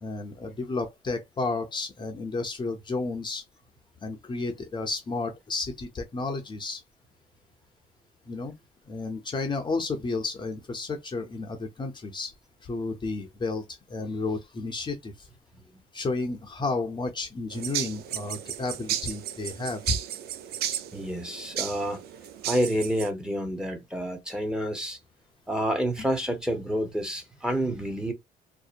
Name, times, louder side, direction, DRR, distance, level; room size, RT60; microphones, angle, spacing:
voice 1, 0.0-3.4 4.0-6.8 8.3-8.6 8.9-12.3 12.6-15.3 15.9-20.0, left 3 dB, 25° left, 0.6 m, -32 dB
sound 1, 17.5-23.1, right 10 dB, 70° right, 0.4 m, -34 dB
voice 2, 20.9-22.0 22.5-25.0 25.5-28.1, equal, 5° right, 0.8 m, -29 dB
2.7 x 2.1 x 2.4 m
cardioid pair, 110°, 17 cm